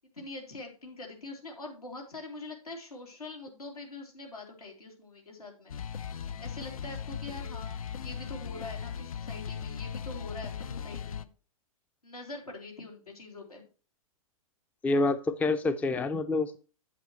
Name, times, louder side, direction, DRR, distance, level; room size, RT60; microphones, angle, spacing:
voice 1, 0.1-5.7 6.2-11.3 12.0-13.6, left 2 dB, 90° left, 0 dB, 3.2 m, -44 dB
sound 1, 5.7-11.3, left 7 dB, 70° left, 0.5 m, -38 dB
voice 2, 14.8-16.6, left 2 dB, 10° left, 11 dB, 0.4 m, -27 dB
8.4 x 8.0 x 3.1 m, 0.35 s
figure-of-eight pair, 115°, 19 cm